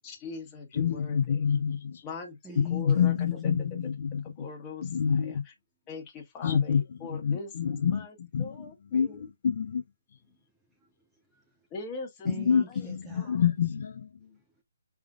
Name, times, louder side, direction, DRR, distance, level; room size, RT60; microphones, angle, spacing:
voice 1, 0.0-1.4 2.0-2.4 2.7-3.1 4.2-4.9 5.9-8.1 8.4-9.2 11.7-12.6 13.1-13.4, left 3 dB, 20° left, 1.4 m, -41 dB
voice 2, 0.7-2.0 2.6-4.5 4.8-5.4 6.4-9.8 12.2-14.3, left 7 dB, 50° left, 0.7 m, -28 dB
voice 3, 2.4-3.1 10.7-11.7 12.2-13.4 14.3-14.6, right 2 dB, 5° right, 0.7 m, -47 dB
5.2 x 3.6 x 2.4 m
hypercardioid pair, 155°, 0 cm